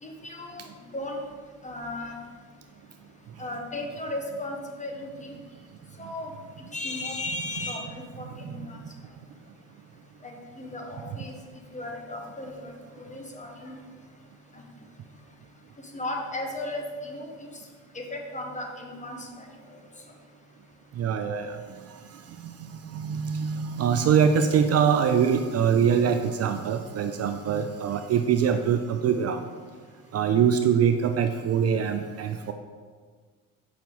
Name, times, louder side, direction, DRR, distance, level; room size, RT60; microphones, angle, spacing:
voice 1, 0.0-1.2 1.6-2.2 3.4-5.3 6.0-6.3 6.7-8.8 10.2-11.3 11.7-13.8 14.5-14.6 15.9-17.3 17.9-19.8, left 1 dB, 20° left, 1 dB, 1.2 m, -36 dB
voice 2, 21.0-21.6 22.7-29.5 30.1-32.5, right 7 dB, 45° right, 7 dB, 0.4 m, -23 dB
7.1 x 5.6 x 3.1 m, 1.5 s
supercardioid pair, 70°, 36 cm